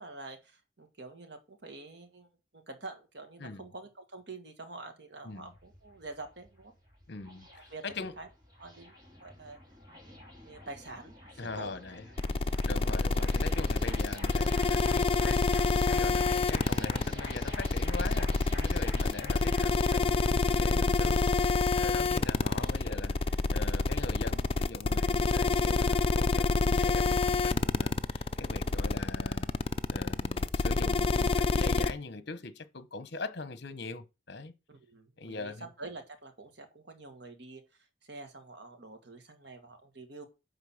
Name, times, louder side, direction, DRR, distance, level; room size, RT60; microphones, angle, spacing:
voice 1, 0.0-2.3 2.5-6.7 7.7-7.8 8.2-8.3 8.6-9.0 9.2-9.6 10.1-10.2 10.4-11.7 12.2-12.4 22.4-22.7 28.5-28.8 34.7-40.2, right 3 dB, 65° right, 1.7 m, -47 dB
sound 1, 5.3-24.3, left 1 dB, 25° right, 2.9 m, -48 dB
voice 2, 7.1-8.1 11.4-12.0 12.6-29.5 29.9-34.5 35.2-35.7, left 3 dB, 60° left, 1.0 m, -42 dB
sound 2, 12.2-31.9, left 3 dB, 30° left, 0.5 m, -27 dB
10.0 x 3.9 x 7.2 m
head